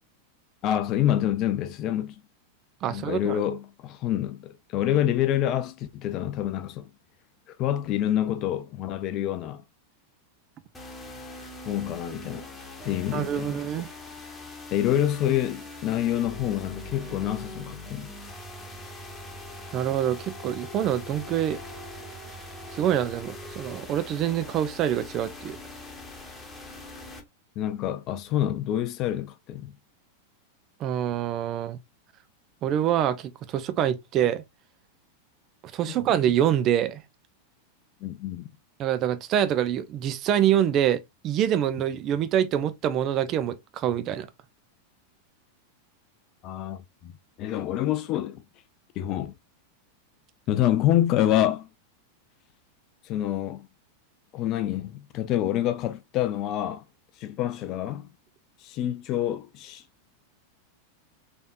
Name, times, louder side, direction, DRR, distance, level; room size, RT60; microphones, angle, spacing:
voice 1, 0.6-2.2 2.9-6.9 7.6-9.6 11.7-12.5 12.8-13.6 14.7-18.1 27.6-29.7 35.9-36.0 38.0-38.5 46.4-47.1 47.4-48.4 49.0-49.3 50.5-51.7 53.0-53.7 54.3-56.8 57.2-58.1 58.6-59.8, left 12 dB, 35° left, 0.4 m, -27 dB
voice 2, 2.8-3.4 13.1-13.9 19.7-21.6 22.7-25.6 30.8-31.8 32.6-34.4 35.7-37.0 38.8-44.3, right 10 dB, 35° right, 0.5 m, -25 dB
sound 1, 10.7-27.2, left 1 dB, 10° left, 1.2 m, -42 dB
3.8 x 3.5 x 2.4 m
figure-of-eight pair, 90°, 0 cm